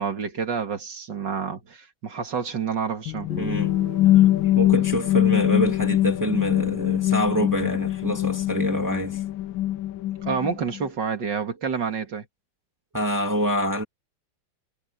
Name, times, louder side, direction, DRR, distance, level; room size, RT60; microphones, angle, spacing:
voice 1, 0.0-3.3 10.2-12.3, right 6 dB, 65° right, 2.7 m, -28 dB
sound 1, 3.1-10.9, left 14 dB, 85° left, 1.5 m, -23 dB
Guitar, 3.3-7.3, equal, 35° left, 2.4 m, -42 dB
voice 2, 3.4-3.8 4.0-9.2 12.9-13.8, equal, 10° right, 2.6 m, -26 dB
omnidirectional pair, 2.1 m